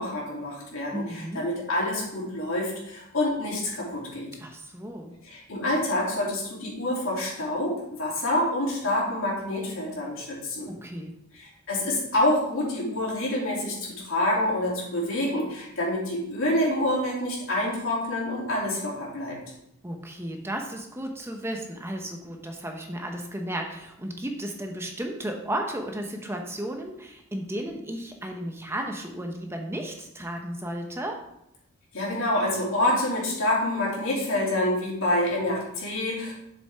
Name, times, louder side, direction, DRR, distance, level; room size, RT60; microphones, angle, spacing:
voice 1, 0.0-4.3 5.2-10.7 11.3-19.4 31.9-36.3, left 1 dB, 70° left, -4 dB, 2.9 m, -27 dB
voice 2, 0.9-1.4 4.4-5.2 10.7-11.1 19.8-31.2, right 1 dB, 10° right, 3 dB, 0.8 m, -34 dB
7.8 x 7.3 x 3.5 m, 0.80 s
head